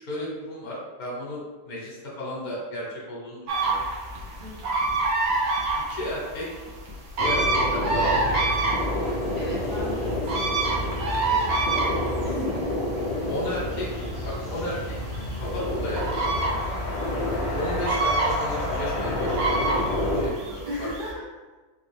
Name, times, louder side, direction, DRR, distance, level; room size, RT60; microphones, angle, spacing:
voice 1, 0.0-3.9 5.9-6.5 7.2-7.4 7.7-8.5 13.3-15.0 15.4-16.1 17.5-20.9, equal, 90° left, -5 dB, 1.4 m, -34 dB
sound 1, 3.5-21.1, right 2 dB, 90° right, 1.4 m, -28 dB
voice 2, 4.4-4.8 9.3-10.0 10.3-12.8 16.5-16.7 20.6-21.2, equal, 35° right, -11 dB, 0.9 m, -37 dB
sound 2, 7.2-20.3, left 1 dB, 45° left, 0.8 m, -29 dB
4.0 x 2.5 x 3.2 m, 1.3 s
omnidirectional pair, 1.5 m